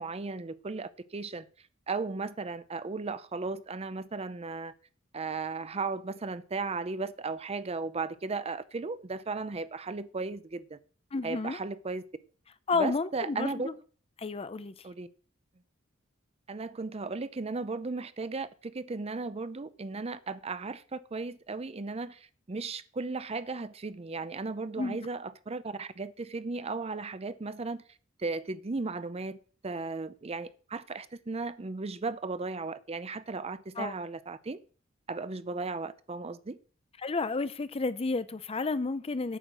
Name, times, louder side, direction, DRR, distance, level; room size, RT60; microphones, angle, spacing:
voice 1, 0.0-1.5 1.9-4.7 5.1-10.8 11.2-12.0 12.7-13.7 14.8-15.1 16.5-27.8 28.2-29.4 29.6-34.6 35.1-36.6, right 3 dB, 30° right, 0.6 m, -36 dB
voice 2, 11.1-11.6 12.7-13.7 14.2-14.7 24.8-25.0 33.8-33.9 37.0-39.4, left 3 dB, 30° left, 0.5 m, -31 dB
9.1 x 6.4 x 6.3 m
head